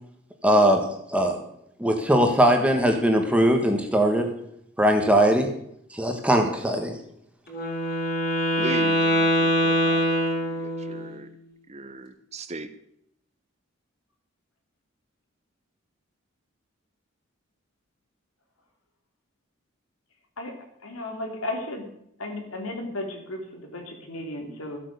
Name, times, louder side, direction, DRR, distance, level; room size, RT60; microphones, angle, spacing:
voice 1, 0.4-1.4 1.8-4.3 4.8-5.5 5.9-6.9, equal, 5° right, 4 dB, 1.3 m, -20 dB
Wind instrument woodwind instrument, 7.5-11.1, equal, 45° left, 3.7 m, -23 dB
voice 2, 8.6-11.3 11.7-12.7, right 2 dB, 30° right, 11 dB, 0.9 m, -37 dB
voice 3, 20.8-21.9 22.2-24.8, left 1 dB, 85° left, 3 dB, 3.0 m, -34 dB
13.5 x 8.3 x 6.7 m, 0.73 s
head